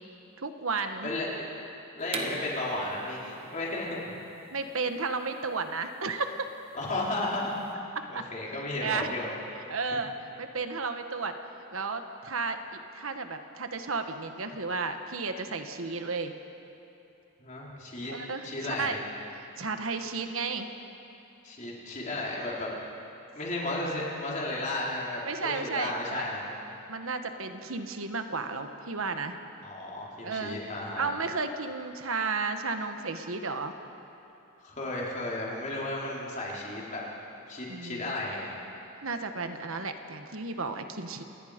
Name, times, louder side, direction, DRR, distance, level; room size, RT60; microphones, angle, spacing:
voice 1, 0.4-1.1 2.2-2.4 4.5-6.5 8.1-8.2 8.8-9.1 9.7-10.1 10.4-11.3 11.7-12.6 12.9-16.3 18.1-19.0 19.6-20.7 25.2-26.2 26.9-29.4 30.2-30.6 31.0-33.7 37.7-38.1 39.0-41.2, right 4 dB, 75° right, 7 dB, 1.2 m, -33 dB
voice 2, 1.0-1.4 1.9-4.1 6.7-7.6 8.1-9.3 17.4-18.1 18.4-19.0 21.4-22.7 23.3-26.4 29.6-31.1 34.6-37.0 37.5-38.5, left 2 dB, 35° left, -5 dB, 4.2 m, -34 dB
sound 1, 2.1-7.7, right 2 dB, 25° right, 1.3 m, -42 dB
27.5 x 19.5 x 5.1 m, 2.8 s
head